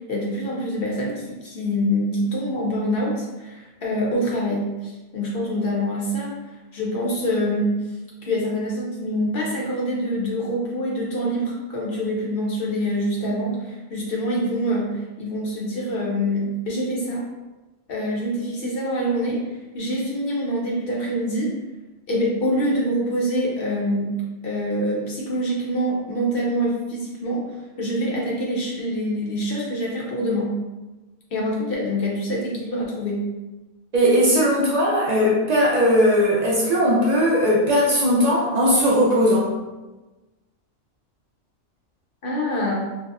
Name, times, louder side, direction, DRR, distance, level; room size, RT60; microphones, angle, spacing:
voice 1, 0.1-6.3 6.7-7.7 8.2-17.2 17.9-19.4 19.7-21.5 22.1-24.1 24.4-27.4 27.8-30.5 31.3-33.2 42.2-42.7, equal, 55° left, -3 dB, 0.7 m, -25 dB
voice 2, 33.9-39.5, equal, 60° right, -6 dB, 0.4 m, -18 dB
3.4 x 2.0 x 2.4 m, 1.1 s
omnidirectional pair, 1.4 m